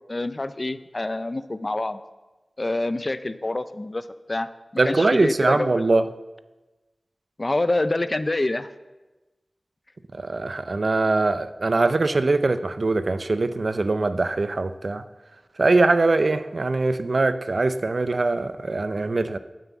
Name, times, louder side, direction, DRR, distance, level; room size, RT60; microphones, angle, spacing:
voice 1, 0.1-2.0 2.6-4.5 4.8-5.9 7.4-8.7, left 2 dB, 40° left, 12 dB, 0.5 m, -26 dB
voice 2, 4.8-6.0 10.1-15.0 15.6-19.4, right 3 dB, 65° right, 11 dB, 0.5 m, -22 dB
9.3 x 7.5 x 7.2 m, 1.1 s
wide cardioid pair, 70°, 0 cm